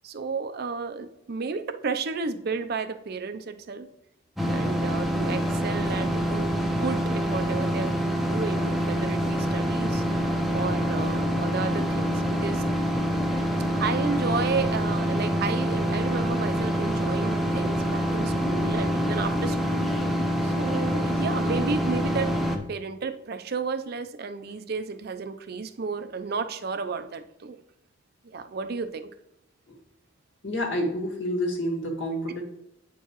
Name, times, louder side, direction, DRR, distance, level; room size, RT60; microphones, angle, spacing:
voice 1, 0.0-3.9 4.5-10.0 10.5-12.6 13.7-19.9 20.4-22.3 22.7-27.6 28.2-29.1, right 4 dB, 55° right, 9 dB, 0.5 m, -32 dB
sound 1, 4.4-22.6, equal, ahead, 0.6 m, -26 dB
voice 2, 30.4-32.4, equal, 65° left, 0 dB, 1.6 m, -28 dB
9.0 x 4.6 x 3.0 m, 0.83 s
head